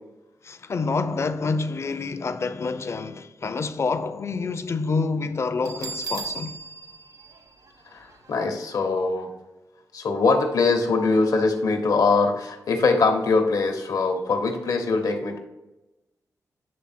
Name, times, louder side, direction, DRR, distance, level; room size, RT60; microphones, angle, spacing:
voice 1, 0.4-6.6, left 4 dB, 45° left, 0.4 m, -27 dB
Bell, 5.6-8.4, right 4 dB, 70° right, 1.0 m, -36 dB
voice 2, 8.3-9.3 9.9-15.4, left 3 dB, 75° left, 0.9 m, -22 dB
8.7 x 3.4 x 4.3 m
cardioid pair, 65°, 6 cm